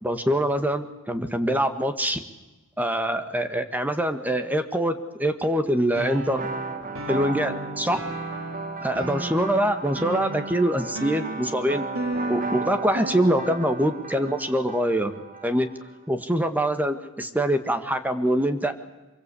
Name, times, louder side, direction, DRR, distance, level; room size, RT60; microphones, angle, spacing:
voice 1, 0.0-2.2 2.8-6.5 7.1-8.0 8.8-11.9 12.3-15.1 15.4-15.7 16.1-18.7, right 1 dB, 10° right, 8 dB, 1.6 m, -24 dB
sound 1, 5.9-13.8, right 1 dB, 70° right, 4.2 m, -35 dB
sound 2, 6.3-15.9, right 4 dB, 40° right, 1.4 m, -35 dB
24.5 x 22.5 x 8.4 m, 1.2 s
head